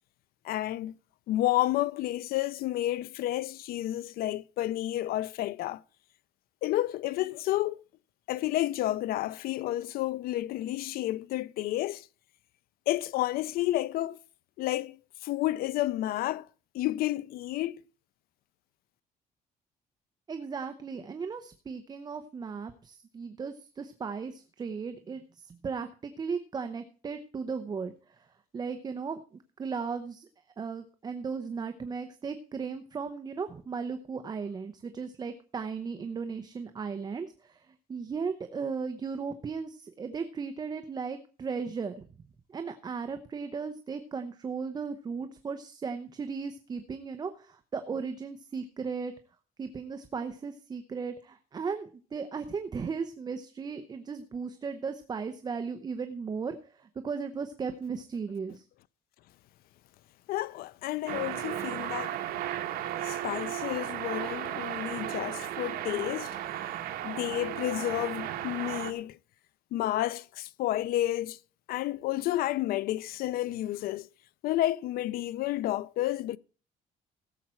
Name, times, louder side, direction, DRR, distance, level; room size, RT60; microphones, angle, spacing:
voice 1, 0.4-1.0 1.3-5.8 6.6-7.8 8.3-12.1 12.9-14.2 14.6-16.5 16.7-17.8 60.3-62.2 63.0-66.4 67.0-69.2 69.7-71.4 71.7-74.1 74.4-76.4, left 15 dB, 80° left, 0.5 m, -31 dB
voice 2, 20.3-28.3 28.5-29.2 29.6-30.3 30.6-42.0 42.5-49.1 49.6-58.6, right 5 dB, 25° right, 0.8 m, -36 dB
sound 1, 61.1-68.9, right 12 dB, 80° right, 1.3 m, -35 dB
16.5 x 7.4 x 4.4 m
cardioid pair, 145°, 15 cm